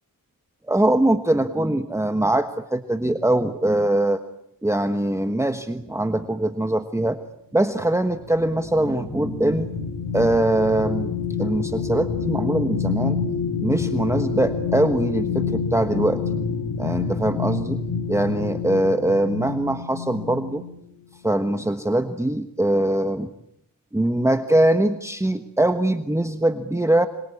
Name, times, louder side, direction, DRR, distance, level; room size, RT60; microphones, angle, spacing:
voice 1, 0.7-4.2 4.6-7.2 7.5-9.7 10.1-11.1 11.4-13.2 13.6-16.2 16.8-17.8 18.1-20.6 21.2-23.3 23.9-27.1, right 1 dB, 10° right, 8 dB, 1.3 m, -22 dB
sound 1, 7.9-20.8 21.3-21.4, left 5 dB, 55° left, 2.4 m, -28 dB
26.0 x 24.0 x 8.4 m, 0.76 s
wide cardioid pair, 95°, 33 cm